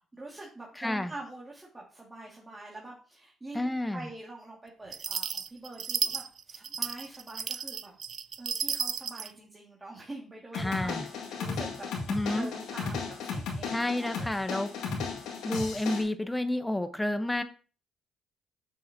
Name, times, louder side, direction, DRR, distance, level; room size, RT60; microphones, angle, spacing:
voice 1, 0.2-8.0 8.4-11.9 12.2-13.7 14.0-14.1 14.4-14.6, right 2 dB, 20° right, -3 dB, 2.1 m, -45 dB
voice 2, 0.7-1.1 3.5-4.1 10.5-11.1 12.1-12.5 13.7-14.7 15.4-17.4, left 1 dB, 10° left, 10 dB, 1.0 m, -30 dB
sound 1, 4.9-9.3, right 6 dB, 50° right, 0.4 m, -33 dB
sound 2, 10.5-16.0, left 5 dB, 80° left, 2.0 m, -35 dB
7.8 x 6.4 x 2.8 m, 0.38 s
supercardioid pair, 65°, 0 cm